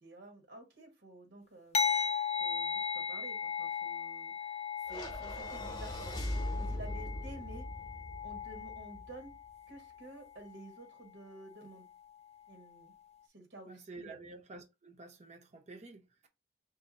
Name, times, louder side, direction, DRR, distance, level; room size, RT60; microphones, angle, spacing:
voice 1, 0.0-1.9 2.4-7.6 8.2-9.3 9.7-11.9 12.5-12.9 13.3-14.3, right 1 dB, 80° right, 1.5 m, -51 dB
sound 1, 1.7-10.9 11.5-11.8, left 6 dB, 35° left, 0.4 m, -37 dB
sound 2, 4.9-9.3, left 1 dB, 20° left, 0.8 m, -40 dB
voice 2, 13.7-16.3, right 3 dB, 40° right, 0.7 m, -50 dB
3.0 x 2.6 x 4.0 m
head